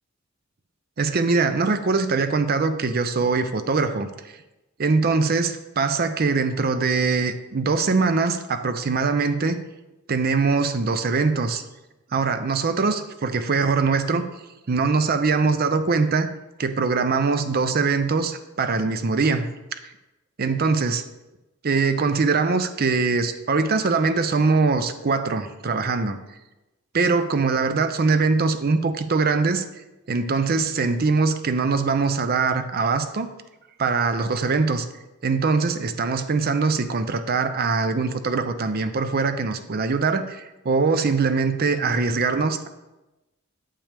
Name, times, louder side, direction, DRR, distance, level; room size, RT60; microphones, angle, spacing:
voice 1, 1.0-4.1 4.8-9.6 10.1-11.6 12.1-14.3 14.7-16.3 16.6-19.5 19.7-19.8 20.4-21.0 21.6-26.2 26.9-29.6 30.1-33.3 33.8-34.9 35.2-42.7, right 4 dB, 50° right, 10 dB, 0.6 m, -22 dB
9.0 x 6.8 x 3.4 m, 1.0 s
head